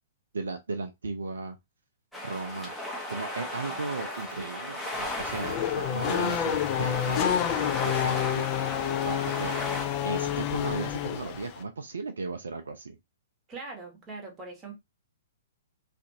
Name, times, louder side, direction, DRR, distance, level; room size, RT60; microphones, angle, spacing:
voice 1, 0.3-1.6 2.2-2.7 3.1-8.4 9.1-9.5 10.0-13.0, right 3 dB, 65° right, 0.4 m, -36 dB
sound 1, 2.1-9.8, left 1 dB, ahead, 0.8 m, -36 dB
Race car auto racing / Accelerating revving vroom, 4.9-11.6, left 10 dB, 30° left, 0.4 m, -29 dB
voice 2, 13.5-14.7, right 3 dB, 20° right, 1.0 m, -41 dB
2.5 x 2.5 x 2.7 m
figure-of-eight pair, 115°, 0 cm